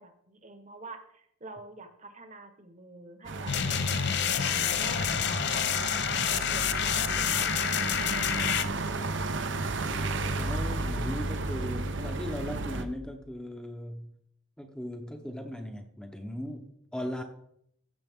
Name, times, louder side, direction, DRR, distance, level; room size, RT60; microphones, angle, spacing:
voice 1, 0.0-9.2, right 2 dB, 35° right, 7 dB, 1.1 m, -48 dB
sound 1, 3.2-12.8, right 2 dB, 60° right, 0.7 m, -33 dB
sound 2, 3.5-8.6, left 9 dB, 55° left, 0.5 m, -28 dB
voice 2, 10.4-14.1 14.6-17.2, equal, 5° left, 4 dB, 0.8 m, -38 dB
15.0 x 6.8 x 3.6 m, 0.72 s
head